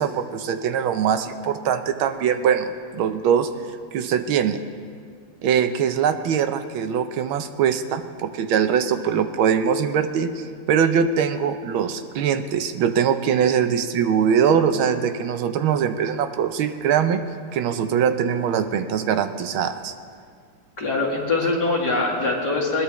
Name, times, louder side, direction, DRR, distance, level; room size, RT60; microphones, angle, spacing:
voice 1, 0.0-3.5 3.9-4.6 5.4-17.2 17.5-19.9, right 7 dB, 75° right, 9 dB, 1.5 m, -22 dB
voice 2, 20.8-22.8, left 3 dB, 50° left, -2 dB, 2.7 m, -23 dB
20.5 x 19.0 x 3.1 m, 2.1 s
omnidirectional pair, 2.3 m